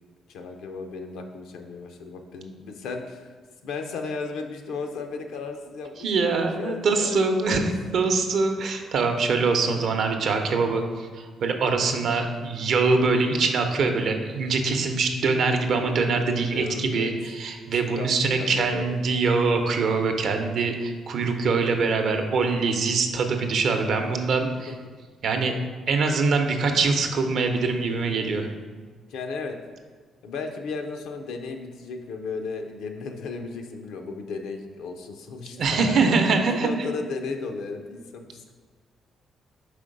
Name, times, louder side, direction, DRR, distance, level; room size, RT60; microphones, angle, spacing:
voice 1, 0.3-3.2 3.6-6.1 6.6-7.7 16.5-17.1 17.7-18.1 18.4-19.0 24.8-24.9 29.1-29.6 30.2-38.5, left 4 dB, 85° left, 4 dB, 0.6 m, -34 dB
voice 2, 6.0-7.6 7.9-24.7 25.2-25.6 25.9-28.5 35.5-36.7, right 4 dB, 65° right, 5 dB, 0.7 m, -23 dB
5.0 x 3.8 x 5.1 m, 1.5 s
cardioid pair, 90°, 0 cm